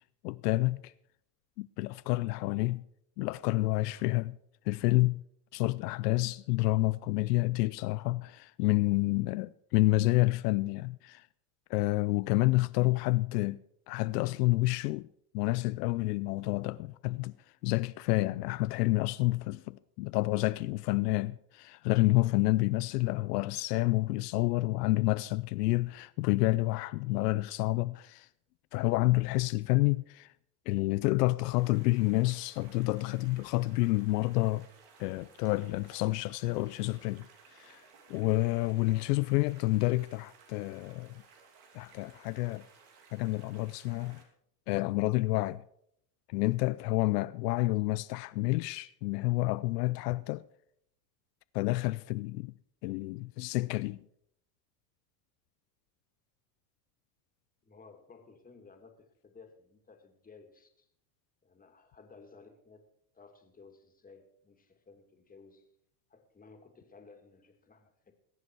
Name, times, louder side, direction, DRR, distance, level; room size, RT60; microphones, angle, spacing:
voice 1, 0.2-0.9 1.6-2.9 3.2-4.4 4.7-5.2 5.5-11.3 11.7-15.1 15.3-17.3 17.6-28.3 28.7-30.3 30.7-34.7 35.0-37.3 37.5-37.8 38.1-41.2 41.7-42.6 43.1-44.2 44.7-45.6 46.3-50.4 51.5-52.5 52.8-54.0, left 20 dB, 85° left, 0.6 m, -29 dB
sound 1, 31.3-44.2, right 5 dB, 80° right, 2.9 m, -59 dB
voice 2, 57.6-60.9 61.4-62.9 63.1-65.7 66.1-68.1, left 4 dB, 20° left, 2.4 m, -56 dB
21.5 x 8.0 x 4.7 m
supercardioid pair, 110°, 46 cm